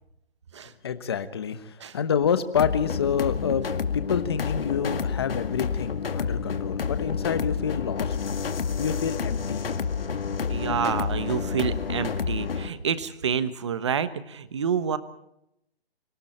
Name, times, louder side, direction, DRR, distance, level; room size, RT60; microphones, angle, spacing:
voice 1, 0.8-3.6 3.9-8.2 8.8-9.7, left 7 dB, 25° left, 11 dB, 1.2 m, -28 dB
sound 1, 2.6-12.7, left 6 dB, 65° left, 2.2 m, -29 dB
voice 2, 10.5-15.0, right 7 dB, 30° right, 13 dB, 1.1 m, -28 dB
28.5 x 25.5 x 4.4 m, 0.79 s
hypercardioid pair, 175°, 31 cm